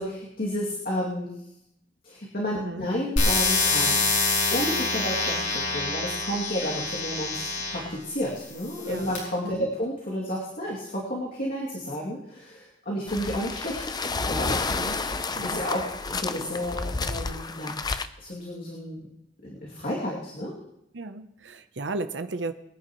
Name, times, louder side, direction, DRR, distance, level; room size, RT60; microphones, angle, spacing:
voice 1, 0.0-1.3 2.0-4.1 4.5-13.8 14.3-14.6 15.4-17.8 18.2-19.1 19.4-20.5, equal, 50° left, -5 dB, 2.6 m, -31 dB
voice 2, 2.5-2.9 8.8-9.1 9.4-9.7 14.7-15.0 15.4-15.6 20.9-22.5, right 2 dB, 65° right, 9 dB, 0.8 m, -34 dB
sound 1, 3.2-7.9 8.6-9.2, left 3 dB, 75° left, 6.7 m, -26 dB
sound 2, 13.1-18.1, left 3 dB, 20° left, 0.5 m, -30 dB
24.0 x 10.5 x 3.1 m, 0.81 s
head